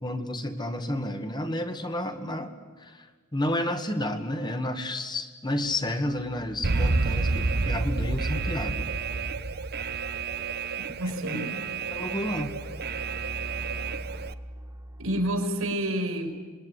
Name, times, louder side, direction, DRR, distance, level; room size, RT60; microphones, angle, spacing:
voice 1, 0.0-8.9 11.9-12.6, left 1 dB, 20° left, 7 dB, 1.7 m, -31 dB
sound 1, 6.0-15.6, equal, 15° right, 2.2 m, -42 dB
Alarm, 6.6-14.3, right 4 dB, 45° right, 0.9 m, -30 dB
voice 2, 10.9-11.5 15.0-16.3, right 1 dB, 80° right, 6 dB, 4.9 m, -29 dB
26.5 x 22.0 x 9.9 m, 1.5 s
head